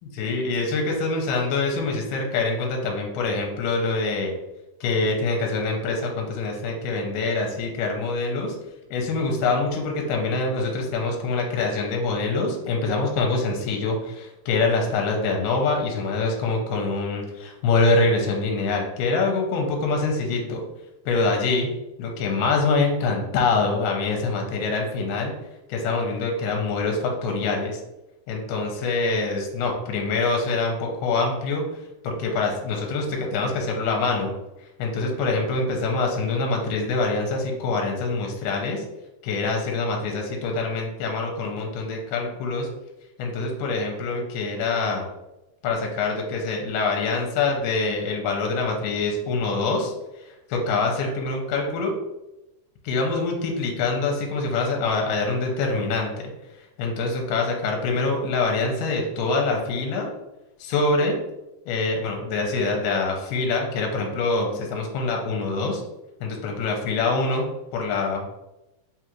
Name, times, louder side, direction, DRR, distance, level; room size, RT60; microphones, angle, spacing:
voice 1, 0.2-4.4 4.8-8.6 8.9-20.6 21.1-21.7 22.0-25.3 25.7-27.8 28.3-31.6 32.0-34.3 34.8-38.8 39.2-42.7 43.2-45.1 45.6-49.9 50.3-51.9 52.8-56.3 56.8-60.1 60.6-61.2 61.7-65.8 66.2-67.5 67.7-68.4, left 3 dB, 80° left, 1 dB, 2.2 m, -25 dB
5.2 x 2.4 x 3.0 m, 0.96 s
omnidirectional pair, 3.9 m